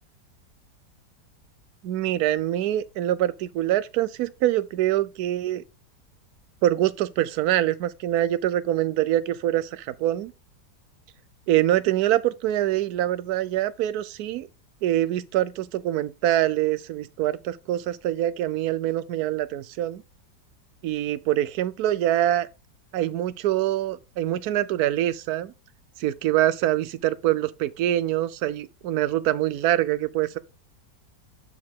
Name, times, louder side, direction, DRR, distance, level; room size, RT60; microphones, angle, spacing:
voice 1, 1.8-5.6 6.6-10.3 11.5-14.5 14.8-20.0 20.8-22.5 22.9-25.5 26.0-30.4, right 13 dB, 70° right, 1.0 m, -24 dB
9.4 x 4.7 x 3.7 m
omnidirectional pair, 1.9 m